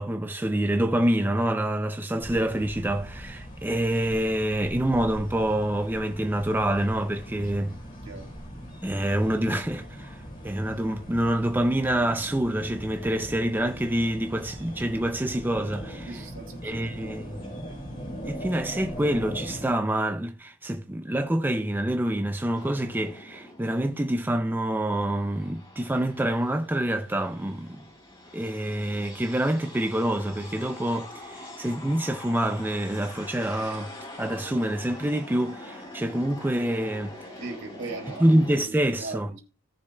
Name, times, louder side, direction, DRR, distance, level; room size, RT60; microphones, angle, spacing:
voice 1, 0.0-7.7 8.8-16.1 16.6-17.4 18.2-27.8 28.3-33.9 34.2-37.2 38.2-39.3, right 1 dB, 10° right, 0.4 m, -26 dB
sound 1, 2.2-19.7, equal, 40° left, 3.9 m, -40 dB
voice 2, 8.0-8.3 16.1-17.3 17.6-17.8 37.4-39.4, right 3 dB, 65° right, 2.9 m, -40 dB
sound 2, 22.5-24.4 24.8-38.7, left 1 dB, 25° left, 3.6 m, -44 dB
17.5 x 6.8 x 2.3 m
head